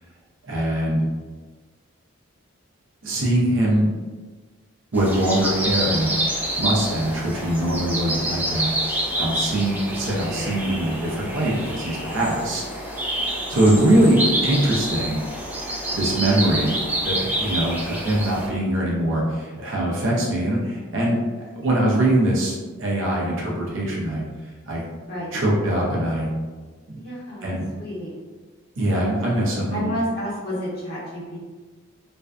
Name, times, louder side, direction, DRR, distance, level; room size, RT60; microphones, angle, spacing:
voice 1, 0.4-1.0 3.0-3.9 4.9-6.1 6.6-12.6 13.3-15.2 15.9-16.8 17.0-24.2 24.7-24.8 25.3-26.3 26.9-27.0 27.4-27.6 28.8-30.0, right 1 dB, 65° right, -3 dB, 0.6 m, -22 dB
sound 1, 4.9-18.5, right 1 dB, 10° right, 0.4 m, -27 dB
voice 2, 10.1-10.7 12.3-12.5 16.1-16.6 25.0-25.3 26.9-28.1 29.5-31.4, equal, 45° left, -9 dB, 1.0 m, -32 dB
2.5 x 2.2 x 2.3 m, 1.3 s
head